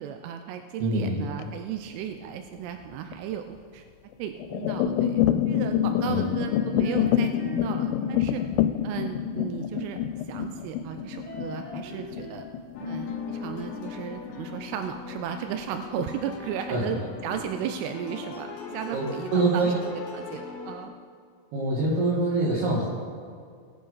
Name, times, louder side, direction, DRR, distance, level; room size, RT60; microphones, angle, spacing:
voice 1, 0.0-3.8 4.2-8.4 8.8-10.0 10.3-12.5 12.9-20.9, right 9 dB, 85° right, 6 dB, 3.1 m, -35 dB
voice 2, 0.8-1.2 6.0-6.2 16.7-16.8 18.9-19.1 19.3-19.8 21.5-22.9, right 2 dB, 65° right, -5 dB, 3.2 m, -24 dB
sound 1, 1.3-2.3 2.9-3.3 4.1-15.2 15.5-16.0 16.4-16.5 16.9-17.6, left 10 dB, 90° left, 3.1 m, -27 dB
sound 2, 6.2-7.7 8.0-10.6 11.0-12.4 12.8-14.8, left 2 dB, 45° right, 3.7 m, -41 dB
sound 3, 12.7-20.8, left 4 dB, 65° left, 3.5 m, -40 dB
20.5 x 7.7 x 4.0 m, 2.2 s
omnidirectional pair, 5.6 m